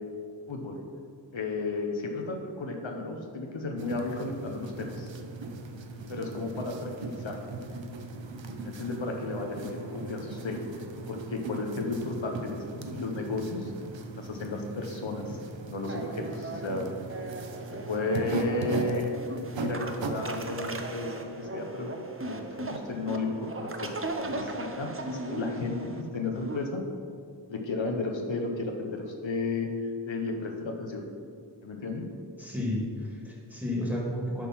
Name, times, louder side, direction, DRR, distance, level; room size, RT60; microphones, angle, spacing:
voice 1, 0.5-0.8 1.3-5.1 6.1-7.5 8.6-10.6 11.1-13.7 14.2-15.4 15.7-16.9 17.7-19.1 19.6-26.8 27.5-31.1 31.6-32.1, left 3 dB, 85° left, 2 dB, 1.0 m, -33 dB
sound 1, 3.8-20.8, right 3 dB, 80° right, 0.7 m, -39 dB
sound 2, 15.9-26.7, right 2 dB, 30° right, 0.6 m, -37 dB
voice 2, 32.4-34.5, left 1 dB, 5° right, -3 dB, 1.9 m, -32 dB
10.5 x 3.7 x 5.9 m, 2.3 s
wide cardioid pair, 70°, 44 cm